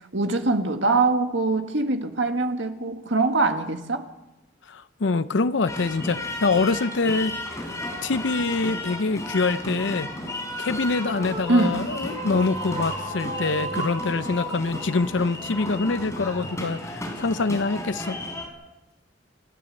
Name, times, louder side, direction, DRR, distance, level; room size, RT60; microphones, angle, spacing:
voice 1, 0.1-4.0 11.5-11.8, right 3 dB, 80° right, 1.8 m, -23 dB
voice 2, 4.7-7.4 8.0-10.1 10.6-18.2, left 3 dB, 75° left, 0.6 m, -25 dB
sound 1, 5.7-18.5, left 1 dB, 15° left, 4.1 m, -34 dB
sound 2, 11.0-16.5, right 2 dB, 40° right, 3.0 m, -35 dB
29.5 x 12.0 x 7.7 m
head